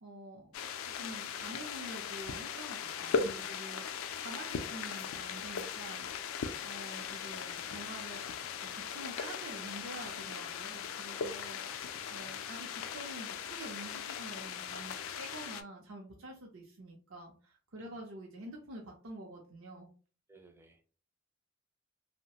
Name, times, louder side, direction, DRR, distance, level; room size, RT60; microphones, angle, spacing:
voice 1, 0.0-3.8 4.2-6.1 6.6-8.2 8.7-11.8 12.1-19.9, right 1 dB, 75° right, -1 dB, 0.6 m, -47 dB
sound 1, 0.5-15.6, left 6 dB, 80° left, 0.3 m, -39 dB
voice 2, 20.3-20.8, right 3 dB, 10° right, 4 dB, 0.4 m, -60 dB
3.1 x 2.1 x 2.7 m, 0.39 s
head